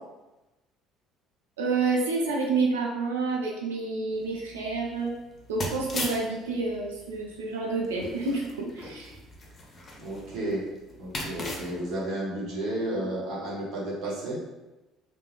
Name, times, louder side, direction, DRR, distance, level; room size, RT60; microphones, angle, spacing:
voice 1, 1.6-5.1 5.5-9.1 13.0-13.1, right 3 dB, 80° right, -2 dB, 0.4 m, -29 dB
sound 1, 4.1-11.9, left 1 dB, 35° left, 0.7 m, -40 dB
voice 2, 10.0-10.6 11.0-14.4, right 1 dB, 60° right, -4 dB, 1.0 m, -32 dB
2.3 x 2.0 x 3.3 m, 1.1 s
hypercardioid pair, 55°, 0 cm